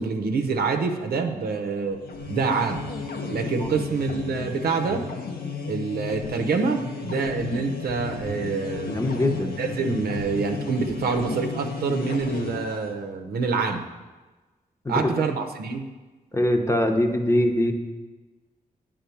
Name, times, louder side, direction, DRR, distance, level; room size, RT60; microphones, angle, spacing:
voice 1, 0.0-2.0 2.3-2.8 3.3-5.1 5.7-9.0 9.6-13.8 14.9-15.9, right 4 dB, 85° right, 5 dB, 0.7 m, -26 dB
sound 1, 1.9-13.0, left 4 dB, 75° left, 0.9 m, -33 dB
voice 2, 8.9-9.5 14.8-15.1 16.3-17.7, left 1 dB, 20° left, 4 dB, 0.9 m, -22 dB
9.3 x 3.8 x 7.0 m, 1.3 s
cardioid pair, 80°, 16 cm